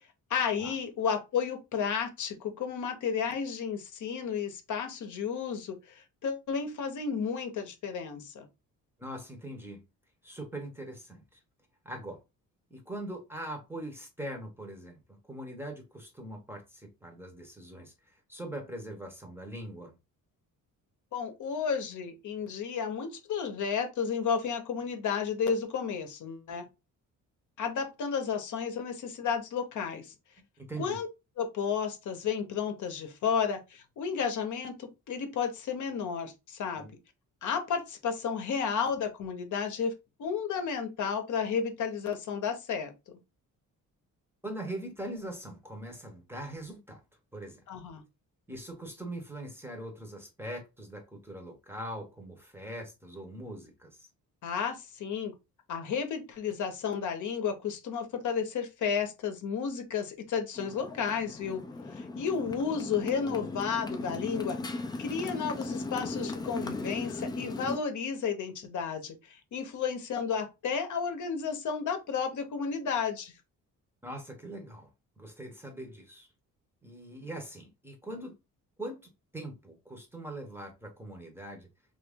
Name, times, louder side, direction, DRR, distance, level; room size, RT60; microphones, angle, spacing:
voice 1, 0.3-8.5 21.1-26.6 27.6-30.1 30.8-31.1 31.4-36.8 37.4-39.9 40.2-43.2 47.7-48.0 54.4-55.3 55.7-61.6 61.9-73.3, left 6 dB, 60° left, 0.8 m, -32 dB
voice 2, 9.0-9.8 10.2-11.4 11.8-12.2 12.7-20.0 30.6-31.0 36.7-36.9 44.4-47.0 47.3-47.6 48.5-54.1 74.0-74.9 75.2-76.3 76.8-78.3 78.8-81.7, right 1 dB, 5° right, 0.7 m, -42 dB
Motorcycle, 60.6-67.8, left 2 dB, 15° left, 0.3 m, -37 dB
2.9 x 2.5 x 3.4 m
cardioid pair, 135°, 33 cm